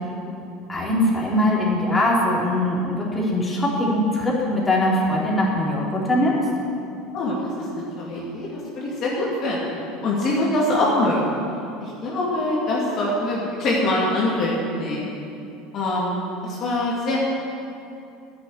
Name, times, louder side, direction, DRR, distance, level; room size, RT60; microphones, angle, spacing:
voice 1, 0.7-6.4, left 1 dB, 15° left, -5 dB, 3.6 m, -21 dB
voice 2, 7.1-11.3 11.8-15.1 15.7-17.2, left 1 dB, 45° left, -5 dB, 2.7 m, -24 dB
10.5 x 7.9 x 9.8 m, 2.6 s
figure-of-eight pair, 70°, 0 cm